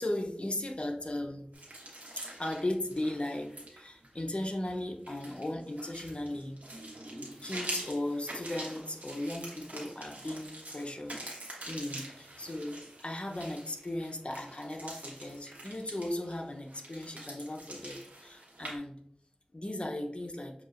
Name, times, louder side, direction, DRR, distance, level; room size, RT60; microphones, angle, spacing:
voice 1, 0.0-1.4 2.1-6.6 7.4-11.2 11.7-18.9 19.5-20.5, left 1 dB, 45° left, 2 dB, 0.7 m, -37 dB
sound 1, 1.5-18.8, right 1 dB, 90° right, 1.1 m, -45 dB
6.0 x 2.7 x 2.5 m, 0.69 s
wide cardioid pair, 40°, 3 cm